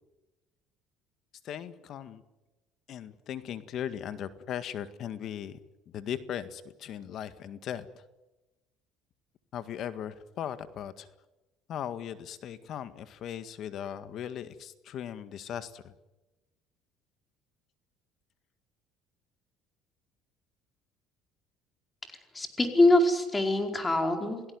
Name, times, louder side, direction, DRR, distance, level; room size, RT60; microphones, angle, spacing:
voice 1, 1.4-2.2 2.9-5.6 5.9-8.0 9.5-11.1 11.7-15.9, left 9 dB, 55° left, 12 dB, 1.8 m, -38 dB
voice 2, 22.3-24.4, left 1 dB, 15° left, 5 dB, 4.7 m, -24 dB
28.0 x 17.0 x 9.8 m, 1.1 s
cardioid pair, 110°, 0 cm